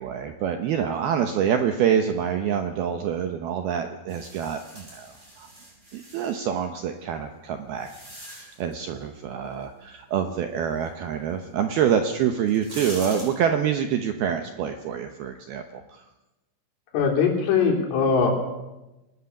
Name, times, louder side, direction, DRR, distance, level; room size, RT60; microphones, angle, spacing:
voice 1, 0.0-5.5 5.9-7.9 8.2-16.0, right 8 dB, 75° right, 6 dB, 2.3 m, -26 dB
sound 1, 4.1-6.4 7.1-8.7 11.7-11.8 12.4-13.3, right 1 dB, 15° right, 6.5 m, -42 dB
voice 2, 16.9-18.3, left 5 dB, 75° left, 1 dB, 5.9 m, -21 dB
22.5 x 19.5 x 7.2 m, 1.0 s
omnidirectional pair, 5.7 m